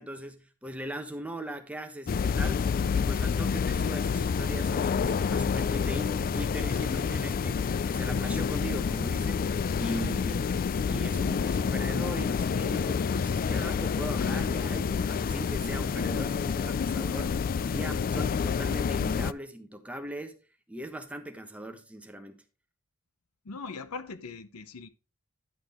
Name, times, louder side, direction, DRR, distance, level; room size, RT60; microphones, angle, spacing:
voice 1, 0.0-2.6 2.9-9.5 9.7-10.5 10.8-20.4 20.7-22.4, right 1 dB, 5° right, 1.1 m, -39 dB
sound 1, 2.1-19.3, left 6 dB, 40° left, 0.3 m, -28 dB
voice 2, 23.4-24.9, left 4 dB, 75° left, 0.8 m, -40 dB
11.0 x 6.4 x 3.6 m
head